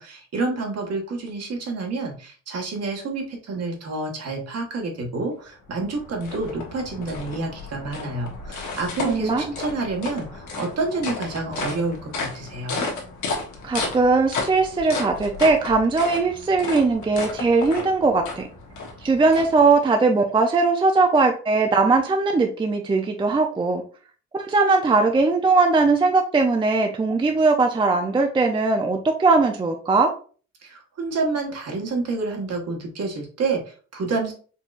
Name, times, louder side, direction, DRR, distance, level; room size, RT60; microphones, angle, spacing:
voice 1, 0.0-12.9 30.6-34.3, right 3 dB, 60° right, 1 dB, 1.3 m, -28 dB
sound 1, 5.5-20.0, left 3 dB, 75° left, 1.2 m, -33 dB
voice 2, 9.0-9.5 13.6-18.5 19.0-23.8 24.4-30.1, right 3 dB, 15° right, 4 dB, 0.4 m, -20 dB
4.4 x 3.0 x 2.4 m, 0.39 s
cardioid pair, 90°, 30 cm